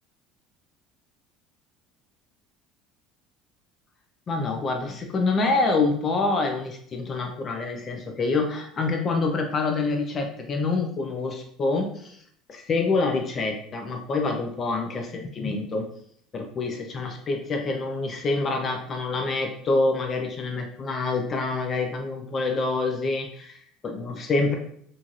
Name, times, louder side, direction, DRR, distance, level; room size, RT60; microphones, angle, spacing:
voice 1, 4.3-12.2 12.5-15.9 16.3-24.6, left 3 dB, 25° left, 3 dB, 0.4 m, -26 dB
3.9 x 2.5 x 2.9 m, 0.64 s
cardioid pair, 175°, 0 cm